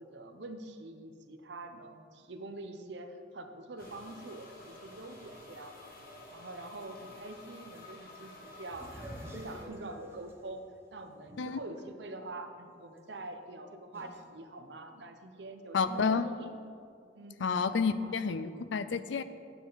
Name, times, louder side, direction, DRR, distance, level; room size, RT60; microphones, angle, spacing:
voice 1, 0.0-5.9 6.3-10.6 10.9-16.5 17.1-17.4 18.0-18.2, right 2 dB, 65° right, 6 dB, 0.8 m, -45 dB
sound 1, 3.8-9.6, left 2 dB, 50° left, 1.5 m, -51 dB
sound 2, 8.7-11.8 12.3-12.4 13.9-14.2, equal, 15° right, 0.9 m, -47 dB
voice 2, 15.7-16.3 17.4-19.2, left 5 dB, 80° left, 12 dB, 0.5 m, -30 dB
9.7 x 9.1 x 4.1 m, 2.3 s
head